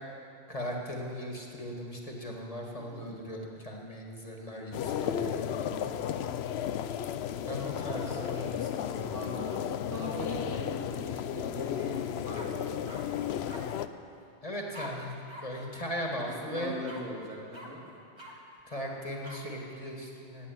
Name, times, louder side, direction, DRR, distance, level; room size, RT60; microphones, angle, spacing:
voice 1, 0.5-5.8 7.4-9.1 14.4-15.1 15.4-16.7 18.6-20.5, equal, 30° left, 0 dB, 2.0 m, -38 dB
voice 2, 2.8-3.1 5.9-6.2 7.9-8.5 8.9-9.6 9.9-13.0 16.3-17.8, equal, 90° right, -5 dB, 3.6 m, -41 dB
sound 1, 4.7-13.9, left 9 dB, 65° left, 0.8 m, -34 dB
sound 2, 11.8-12.0 12.3-13.0 13.5-13.6 14.7-14.9 15.3-15.4 15.7-15.8 16.2-16.4 16.8-17.0 17.5-17.7 18.2-18.3 19.2-19.4, left 1 dB, 25° right, 2.1 m, -46 dB
17.0 x 8.2 x 9.2 m, 2.5 s
omnidirectional pair, 1.2 m